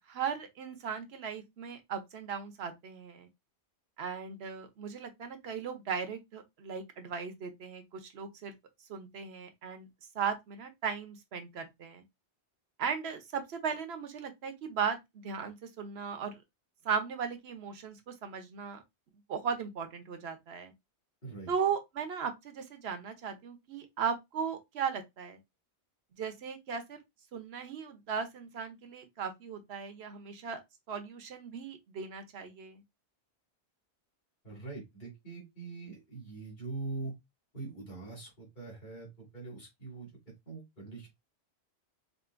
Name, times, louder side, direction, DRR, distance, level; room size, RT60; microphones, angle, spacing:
voice 1, 0.1-3.3 4.0-8.5 8.9-9.9 10.1-12.0 12.8-16.4 16.8-18.8 19.3-20.7 21.5-25.4 26.1-27.0 27.3-30.6 30.9-32.8, right 6 dB, 70° right, 1.1 m, -37 dB
voice 2, 34.4-37.1 37.5-40.1 40.5-41.1, right 3 dB, 45° left, 2.2 m, -43 dB
5.0 x 2.6 x 2.5 m
omnidirectional pair, 1.1 m